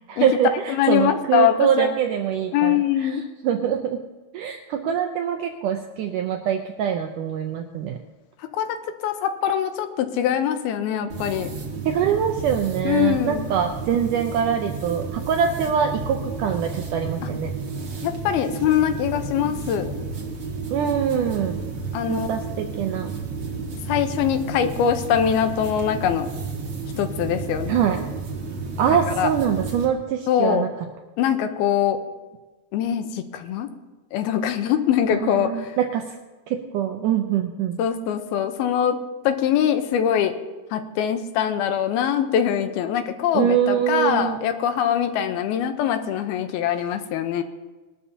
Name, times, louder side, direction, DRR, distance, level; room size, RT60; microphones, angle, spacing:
voice 1, 0.1-3.2 3.4-4.0 4.3-8.0 11.8-17.5 20.7-21.6 22.1-23.2 27.7-28.0 28.8-30.7 35.2-36.0 36.5-37.8 43.3-44.4, right 8 dB, 80° right, 5 dB, 1.9 m, -24 dB
voice 2, 0.7-1.9 2.5-3.2 8.5-8.8 9.0-11.5 12.8-13.5 18.0-19.9 21.9-22.3 23.9-26.3 27.0-27.8 29.2-29.3 30.3-30.7 31.2-32.0 32.7-33.7 34.1-35.8 37.8-39.0 39.2-40.3 40.7-47.4, left 9 dB, 80° left, 8 dB, 2.7 m, -23 dB
sound 1, 11.1-29.9, right 4 dB, 45° right, 1.7 m, -32 dB
21.0 x 12.5 x 2.8 m, 1.2 s
omnidirectional pair, 4.5 m